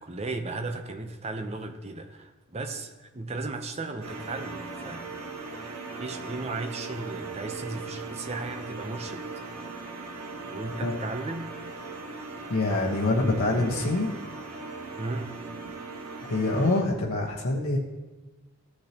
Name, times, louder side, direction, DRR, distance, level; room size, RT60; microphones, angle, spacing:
voice 1, 0.0-5.0 5.5-9.3 10.5-11.5 15.0-15.4, right 3 dB, 30° right, 5 dB, 0.7 m, -35 dB
sound 1, 4.0-16.8, right 3 dB, 90° right, 1.3 m, -39 dB
voice 2, 12.5-14.1 16.3-17.8, left 2 dB, 90° left, -3 dB, 1.2 m, -25 dB
14.5 x 6.5 x 2.9 m, 1.2 s
head